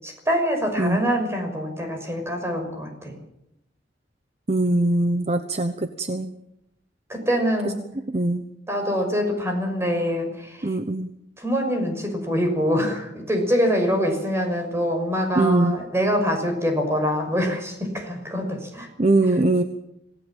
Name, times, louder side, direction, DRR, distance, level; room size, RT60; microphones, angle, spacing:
voice 1, 0.0-3.2 7.1-7.8 8.7-10.8 11.4-18.9, equal, 15° right, 4 dB, 6.0 m, -24 dB
voice 2, 4.5-6.3 8.1-8.4 10.6-11.1 15.3-15.8 19.0-19.6, right 2 dB, 35° right, 9 dB, 1.0 m, -21 dB
26.5 x 17.5 x 7.4 m, 0.82 s
head